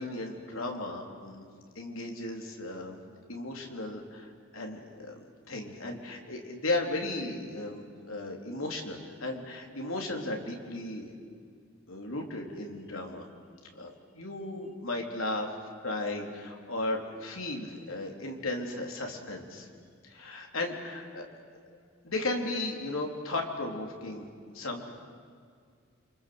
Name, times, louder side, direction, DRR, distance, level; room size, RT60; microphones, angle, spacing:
voice 1, 0.0-1.4 1.8-3.0 3.3-5.2 5.5-11.1 11.9-13.2 13.8-15.5 15.8-19.7 20.0-21.2 22.0-24.9, left 2 dB, 75° left, 2 dB, 3.9 m, -35 dB
29.5 x 25.0 x 8.0 m, 2.1 s
head